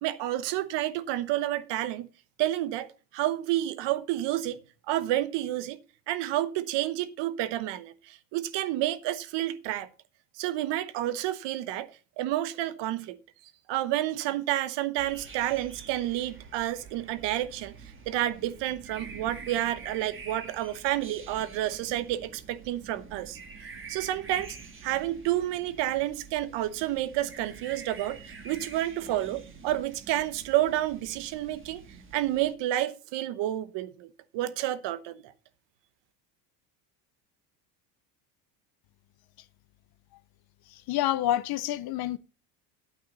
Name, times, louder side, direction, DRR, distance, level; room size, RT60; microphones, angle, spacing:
voice 1, 0.0-2.1 2.4-4.6 4.9-5.8 6.1-9.9 10.4-11.9 12.2-13.2 13.7-17.7 18.1-23.4 23.9-24.6 24.8-31.8 32.1-34.1 34.3-35.3, right 14 dB, 60° right, 1.1 m, -30 dB
sound 1, 15.0-32.5, right 5 dB, 25° right, 1.7 m, -47 dB
voice 2, 40.7-42.2, left 13 dB, 50° left, 0.8 m, -28 dB
9.3 x 8.7 x 4.1 m
supercardioid pair, 95°, 49 cm